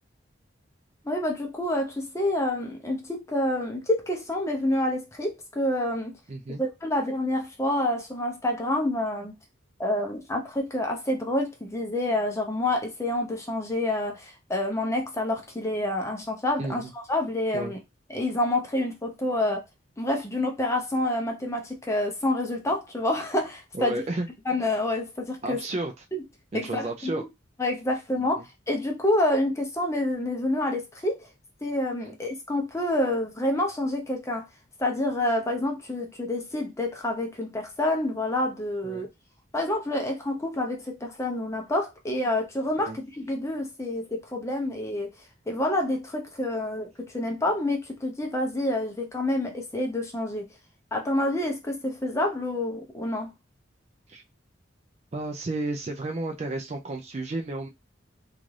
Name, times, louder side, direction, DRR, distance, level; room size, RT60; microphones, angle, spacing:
voice 1, 1.0-6.2 6.6-9.3 9.8-17.8 18.1-19.6 20.0-24.0 24.5-25.6 26.1-26.2 26.5-27.3 27.6-31.3 31.6-34.5 34.8-39.1 39.5-45.1 45.5-50.5 50.9-53.3, left 1 dB, 15° left, 0.5 m, -28 dB
voice 2, 6.3-6.6 16.6-16.9 17.5-17.7 23.7-24.3 25.4-25.9 26.5-27.2 28.2-28.3 38.8-39.1 42.8-43.0 54.1-54.2 55.1-57.7, right 2 dB, 35° right, 0.4 m, -32 dB
2.6 x 2.4 x 3.1 m
head